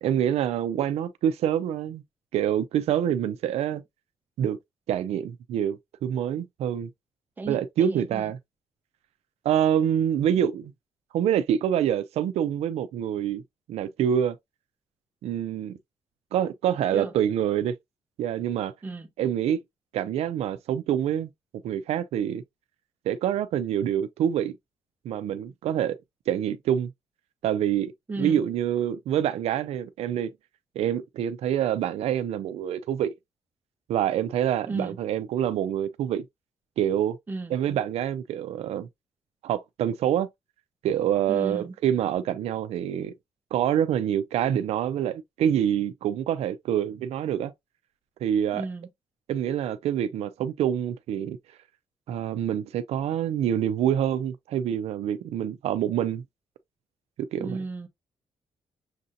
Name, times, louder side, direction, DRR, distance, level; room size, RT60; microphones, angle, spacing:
voice 1, 0.0-2.0 2.3-3.8 4.4-4.6 4.9-6.9 7.5-8.4 9.4-10.7 11.1-13.4 13.7-14.4 15.2-15.8 16.3-17.8 18.2-18.7 19.2-19.6 19.9-21.3 21.6-22.4 23.1-24.5 25.0-26.0 26.3-26.9 27.4-27.9 28.2-30.3 30.8-33.1 33.9-36.2 36.8-37.2 37.5-38.9 39.4-40.3 40.8-43.1 43.5-47.5 48.2-48.6 49.3-51.4 52.1-56.2 57.3-57.6, right 10 dB, 90° right, 0.4 m, -26 dB
voice 2, 7.4-8.3 16.9-17.1 18.8-19.1 28.1-28.4 34.7-35.0 37.3-37.5 41.3-41.7 48.5-48.9 57.4-57.9, right 3 dB, 20° right, 0.6 m, -34 dB
6.5 x 2.7 x 2.5 m
wide cardioid pair, 175°, 10 cm